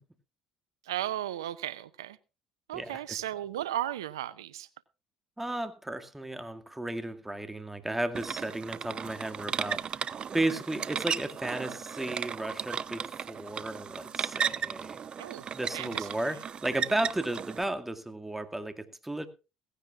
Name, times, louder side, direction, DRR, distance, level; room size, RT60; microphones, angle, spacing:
voice 1, 0.8-2.2 2.7-4.7 15.2-15.5 15.7-16.4, right 12 dB, 90° right, 0.6 m, -35 dB
voice 2, 5.4-15.0 15.5-19.3, right 1 dB, 10° right, 2.1 m, -34 dB
sound 1, 8.1-17.6, right 7 dB, 40° right, 0.7 m, -35 dB
17.0 x 15.5 x 2.4 m
hypercardioid pair, 65°, 2 cm